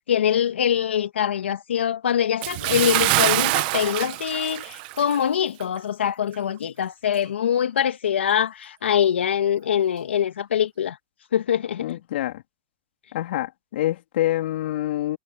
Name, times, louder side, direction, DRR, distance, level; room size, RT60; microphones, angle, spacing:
voice 1, 0.1-11.0 11.3-12.0, left 9 dB, 85° left, 2.0 m, -23 dB
Bathtub (filling or washing) / Splash splatter, 2.4-5.3 5.6-5.8 6.3-6.4, right 22 dB, 50° right, 1.5 m, -24 dB
voice 2, 11.8-12.4 13.1-15.2, left 14 dB, 65° left, 3.7 m, -26 dB
hypercardioid pair, 130°, 6 cm